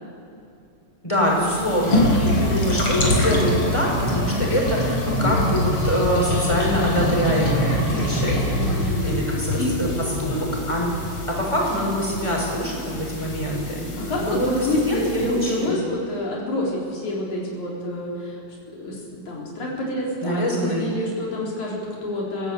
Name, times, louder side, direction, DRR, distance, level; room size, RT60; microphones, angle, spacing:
voice 1, 1.0-9.9 10.2-10.9 11.4-13.9 14.2-15.8 20.2-20.9, equal, 10° left, -2 dB, 5.9 m, -24 dB
sound 1, 1.3-15.6, left 1 dB, 50° left, 4.7 m, -25 dB
voice 2, 8.2-9.0 9.6-9.7 14.0-18.4 18.8-22.5, left 1 dB, 80° left, -4 dB, 5.6 m, -27 dB
27.5 x 16.5 x 8.5 m, 2.6 s
omnidirectional pair, 3.3 m